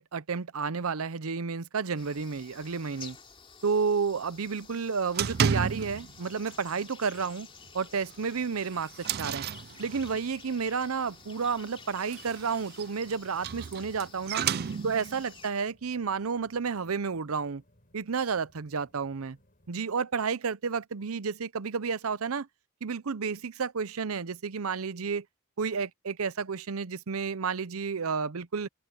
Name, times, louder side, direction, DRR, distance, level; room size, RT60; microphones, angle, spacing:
voice 1, 0.0-3.2 3.6-7.5 7.7-9.4 9.8-14.5 14.8-17.6 17.9-19.4 19.7-22.5 22.8-25.2 25.6-28.7, right 5 dB, 85° right, 0.7 m, -31 dB
sound 1, 2.0-15.5, left 5 dB, 25° left, 3.4 m, -51 dB
sound 2, 5.1-6.2 6.5-6.8 7.1-7.2 7.7-7.8 8.4-10.3 11.8-15.2, right 7 dB, 50° right, 0.4 m, -32 dB
sound 3, 7.5-19.7, left 1 dB, 40° left, 5.5 m, -65 dB
open air
head